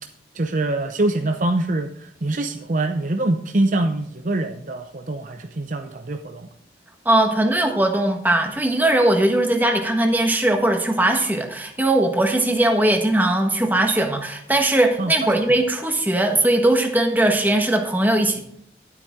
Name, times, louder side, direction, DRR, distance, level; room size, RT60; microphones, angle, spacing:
voice 1, 0.3-6.5 15.0-15.3, right 2 dB, 45° right, 5 dB, 0.7 m, -24 dB
voice 2, 7.0-18.4, right 1 dB, 10° right, 3 dB, 1.3 m, -19 dB
12.0 x 8.3 x 3.6 m, 0.69 s
head